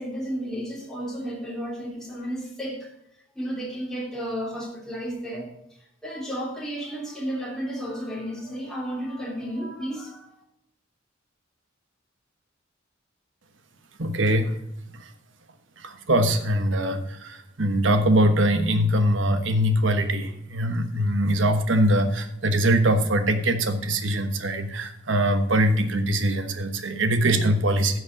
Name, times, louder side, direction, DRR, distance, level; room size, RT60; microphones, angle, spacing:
voice 1, 0.0-2.9 3.3-10.3, equal, 5° left, -4 dB, 3.1 m, -33 dB
voice 2, 14.0-14.5 15.8-28.0, right 1 dB, 75° right, 8 dB, 1.2 m, -22 dB
11.0 x 6.3 x 5.2 m, 0.79 s
head